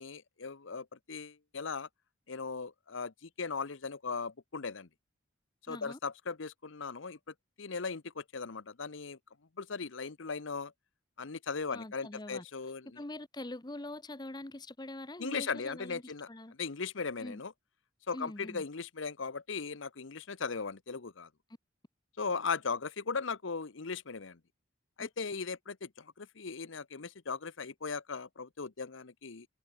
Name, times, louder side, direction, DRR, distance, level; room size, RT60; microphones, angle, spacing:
voice 1, 0.0-1.9 2.3-4.9 5.7-7.2 7.6-9.2 9.6-10.7 11.2-13.0 15.2-16.3 16.6-17.5 18.1-21.3 22.2-24.4 25.0-29.5, left 5 dB, 70° left, 0.9 m, -38 dB
voice 2, 5.7-6.0 11.7-12.4 13.0-16.5 17.2-17.4 18.1-18.6 25.0-25.1, left 1 dB, 20° left, 1.0 m, -44 dB
head